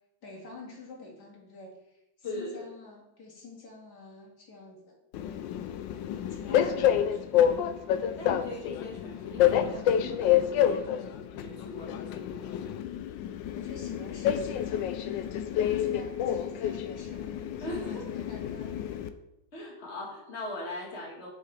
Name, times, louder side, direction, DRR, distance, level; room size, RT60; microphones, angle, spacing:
voice 1, 0.2-5.5 6.3-7.4 13.5-14.9 15.3-17.3 17.6-19.0, left 3 dB, 50° left, -2 dB, 2.4 m, -48 dB
voice 2, 2.2-2.6 6.5-6.9 8.2-12.6 17.6-18.1 19.5-21.3, left 1 dB, 35° left, -1 dB, 1.8 m, -40 dB
Train, 5.1-19.1, left 10 dB, 75° left, 1.1 m, -28 dB
11.5 x 5.6 x 3.3 m, 0.88 s
omnidirectional pair, 2.3 m